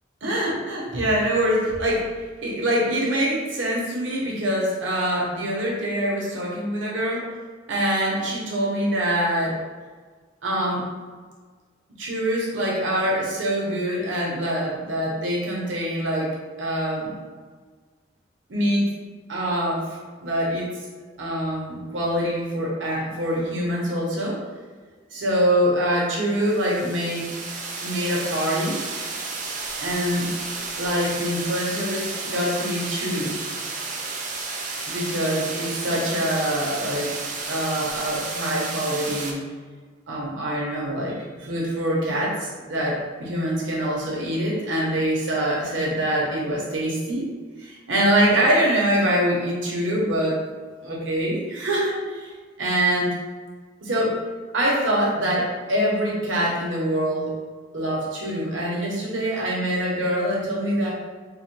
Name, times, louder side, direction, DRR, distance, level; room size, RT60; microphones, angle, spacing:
voice 1, 0.2-7.2 7.7-9.6 10.4-10.8 12.0-16.3 16.6-17.1 18.5-18.9 19.3-20.7 21.2-24.4 25.1-27.3 27.8-28.8 29.8-30.3 30.8-33.4 34.9-37.2 37.5-39.4 40.1-47.3 47.6-50.4 50.8-52.3 52.6-53.1 53.8-54.2 54.5-57.3 57.7-60.9, equal, 85° right, -4 dB, 0.9 m, -24 dB
sound 1, 26.3-39.3, right 3 dB, 40° right, 0.5 m, -32 dB
3.9 x 2.2 x 3.0 m, 1.5 s
head